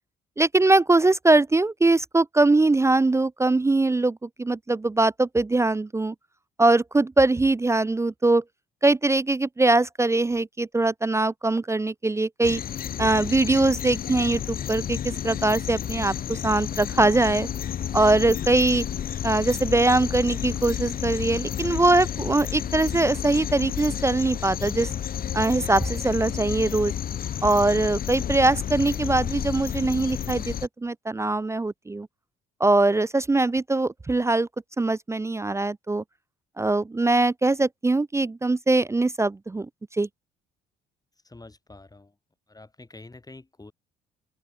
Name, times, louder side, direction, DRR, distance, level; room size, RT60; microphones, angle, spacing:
voice 1, 0.4-6.1 6.6-8.4 8.8-12.6 13.0-17.5 17.9-18.8 19.2-24.9 25.3-26.9 27.4-30.5 30.8-32.1 32.6-34.5 34.8-36.0 36.6-40.1, right 2 dB, 15° right, 0.4 m, -22 dB
sound 1, 12.4-30.7, left 9 dB, 45° left, 0.8 m, -31 dB
voice 2, 41.2-42.1 42.5-43.7, left 2 dB, 20° left, 4.3 m, -47 dB
open air
hypercardioid pair, 55°, 21 cm